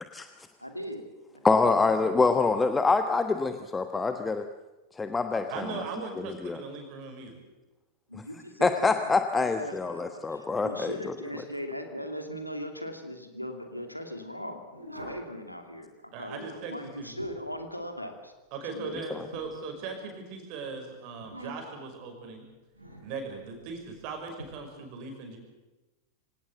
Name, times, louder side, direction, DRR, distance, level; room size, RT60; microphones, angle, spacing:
voice 1, 0.6-1.1 1.3-1.7 8.1-9.0 9.3-18.3 18.7-19.0, equal, 90° left, 5 dB, 2.5 m, -39 dB
voice 2, 1.4-4.4 5.0-5.7 6.4-6.6 8.6-11.1 19.1-19.2, left 4 dB, 10° left, 7 dB, 1.2 m, -25 dB
voice 3, 5.5-7.4 16.1-17.1 18.5-22.4 23.0-25.4, right 4 dB, 45° right, 4 dB, 5.8 m, -39 dB
sound 1, 14.7-15.3 16.8-17.6 19.3-20.2 21.2-21.9 22.7-23.1 24.4-24.5, right 1 dB, 85° right, 4.8 m, -44 dB
25.5 x 18.0 x 7.9 m, 1.1 s
figure-of-eight pair, 90°, 0 cm